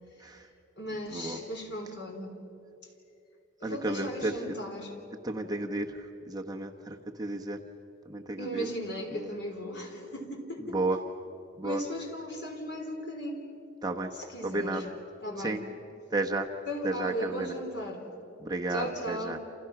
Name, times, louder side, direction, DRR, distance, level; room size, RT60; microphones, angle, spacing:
voice 1, 0.8-2.4 3.6-4.9 8.4-10.8 11.6-13.4 14.2-14.8 15.2-15.6 16.7-18.0 18.7-19.4, equal, 55° left, 2 dB, 3.9 m, -36 dB
voice 2, 3.6-4.6 5.2-7.6 8.0-8.7 9.1-9.4 10.7-11.0 11.6-11.8 13.8-14.1 14.4-14.8 15.4-15.6 16.1-16.5 16.8-17.5 18.4-19.4, right 2 dB, 20° right, 3 dB, 1.1 m, -32 dB
29.5 x 28.0 x 6.0 m, 2.8 s
head